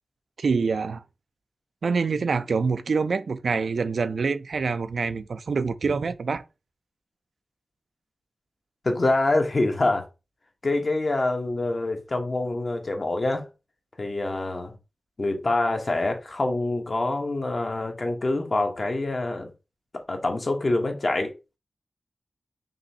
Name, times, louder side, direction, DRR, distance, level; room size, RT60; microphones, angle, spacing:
voice 1, 0.4-1.0 1.8-6.4, right 4 dB, 80° right, 0.4 m, -26 dB
voice 2, 8.8-10.1 10.6-13.4 14.0-14.8 15.2-19.5 20.1-21.3, left 2 dB, 50° left, 1.1 m, -25 dB
5.3 x 3.0 x 2.8 m
wide cardioid pair, 60°, 0 cm